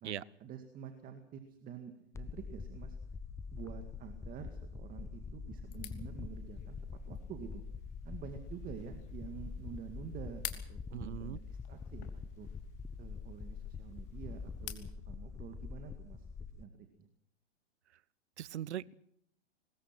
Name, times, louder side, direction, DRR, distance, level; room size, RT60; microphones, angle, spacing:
voice 1, 0.0-3.0 3.5-6.8 7.0-7.6 8.0-12.5 13.0-16.3 16.6-17.1, right 8 dB, 25° right, 7 dB, 2.2 m, -48 dB
sound 1, 2.1-16.6, left 5 dB, 10° left, 0.8 m, -45 dB
sound 2, 5.7-14.9, left 14 dB, 50° left, 3.1 m, -52 dB
voice 2, 10.9-11.4 18.4-18.9, right 11 dB, 70° right, 23 dB, 0.9 m, -40 dB
24.0 x 21.0 x 6.1 m, 0.71 s
hypercardioid pair, 125°, 35 cm